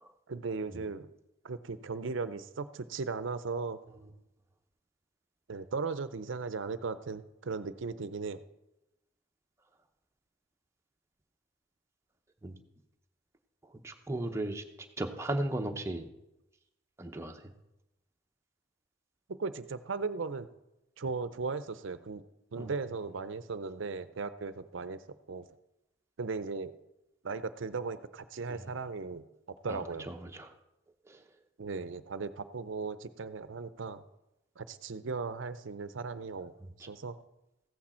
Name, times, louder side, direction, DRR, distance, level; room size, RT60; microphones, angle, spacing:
voice 1, 0.3-1.1 1.4-3.8 5.5-8.4 19.3-20.5 21.0-22.2 22.5-25.0 25.3-25.5 26.2-26.7 27.2-30.1 31.6-34.0 34.6-36.5 36.8-37.2, right 4 dB, 65° right, 13 dB, 0.6 m, -37 dB
voice 2, 13.6-14.6 15.0-16.1 17.0-17.5 22.6-22.7 28.5-28.6 29.7-30.5 31.1-31.2 36.8-36.9, right 1 dB, 15° right, 4 dB, 0.8 m, -36 dB
14.5 x 8.6 x 4.3 m, 0.93 s
head